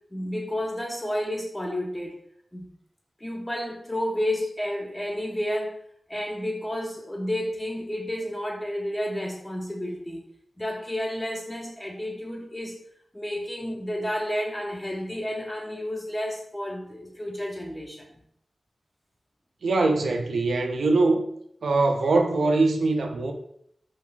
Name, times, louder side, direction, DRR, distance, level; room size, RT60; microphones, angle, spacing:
voice 1, 0.1-2.2 2.5-2.7 3.2-5.8 6.1-10.2 10.6-12.8 13.1-18.1 22.1-22.2, left 1 dB, 20° left, 0.4 m, -31 dB
voice 2, 19.6-21.2 21.6-23.3, right 3 dB, 90° right, 0.3 m, -22 dB
2.4 x 2.2 x 3.0 m
cardioid pair, 45°, 0 cm